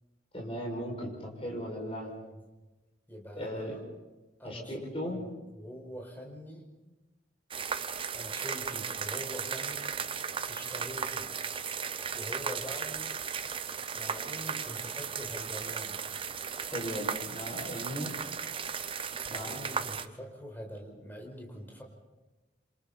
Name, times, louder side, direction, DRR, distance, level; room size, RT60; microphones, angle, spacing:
voice 1, 0.3-2.1 3.3-3.8 4.4-5.2 16.7-18.1 19.3-19.6, equal, 30° left, -1 dB, 6.1 m, -37 dB
voice 2, 2.0-2.3 3.1-3.8 4.4-5.3 5.5-6.7 8.1-10.0 10.5-11.3 12.1-13.1 13.9-16.0 19.3-21.8, equal, 10° left, 0 dB, 5.1 m, -44 dB
sound 1, 7.5-20.1, right 6 dB, 30° right, 0.7 m, -36 dB
28.0 x 26.5 x 4.3 m, 1.1 s
head